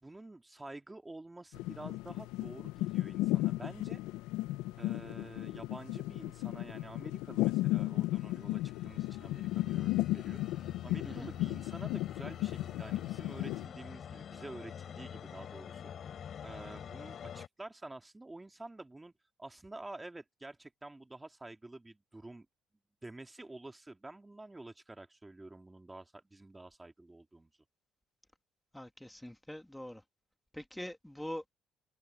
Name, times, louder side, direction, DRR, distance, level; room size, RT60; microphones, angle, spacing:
voice 1, 0.0-4.0 4.8-19.1 19.4-22.5 23.0-27.5, right 2 dB, 15° right, 2.2 m, -49 dB
sound 1, 1.5-13.7, left 17 dB, 90° left, 0.5 m, -35 dB
sound 2, 7.9-17.5, left 8 dB, 55° left, 3.3 m, -47 dB
voice 2, 28.7-30.0 30.5-31.5, left 1 dB, 5° left, 2.1 m, -43 dB
cardioid pair, 85°, 0 cm